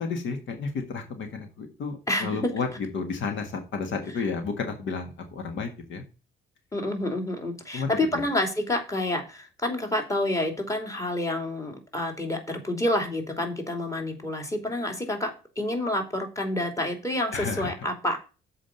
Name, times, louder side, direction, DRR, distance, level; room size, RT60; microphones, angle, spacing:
voice 1, 0.0-6.0 7.7-8.0 17.3-17.7, left 4 dB, 70° left, 6 dB, 1.7 m, -32 dB
voice 2, 6.7-18.2, left 1 dB, 15° left, 3 dB, 2.8 m, -28 dB
7.3 x 5.0 x 6.8 m, 0.32 s
cardioid pair, 90°, 20 cm